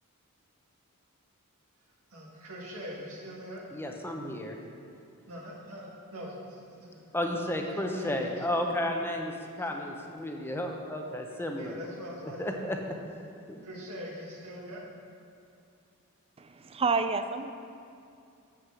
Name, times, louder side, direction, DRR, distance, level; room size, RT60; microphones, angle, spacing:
voice 1, 2.1-3.6 5.3-7.0 7.6-8.3 8.7-8.8 9.6-9.7 11.6-12.4 13.6-14.8, equal, 70° right, -3 dB, 1.7 m, -43 dB
voice 2, 3.7-4.6 7.1-9.3 9.6-11.7 12.2-12.8 13.5-13.6, left 1 dB, 10° left, 2 dB, 0.8 m, -32 dB
voice 3, 16.4-17.5, right 4 dB, 25° right, 9 dB, 0.4 m, -29 dB
7.4 x 6.5 x 6.2 m, 2.5 s
head